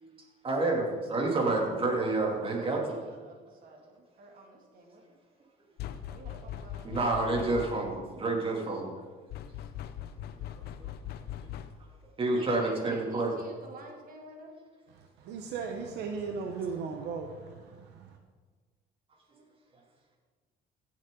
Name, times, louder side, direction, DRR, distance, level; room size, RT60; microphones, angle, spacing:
voice 1, 0.4-2.8 6.8-8.9 10.4-10.5 10.8-10.9 12.2-13.3, right 2 dB, 30° right, 0 dB, 2.7 m, -29 dB
voice 2, 2.4-5.0 6.1-6.9 12.4-14.5 19.3-19.4, right 1 dB, 55° right, 1 dB, 2.4 m, -49 dB
sound 1, 5.8-8.0 9.3-12.0, left 10 dB, 70° left, 0.7 m, -41 dB
voice 3, 14.9-18.2, right 5 dB, 85° right, 3 dB, 0.9 m, -37 dB
16.0 x 7.4 x 3.8 m, 1.4 s
cardioid pair, 110°, 17 cm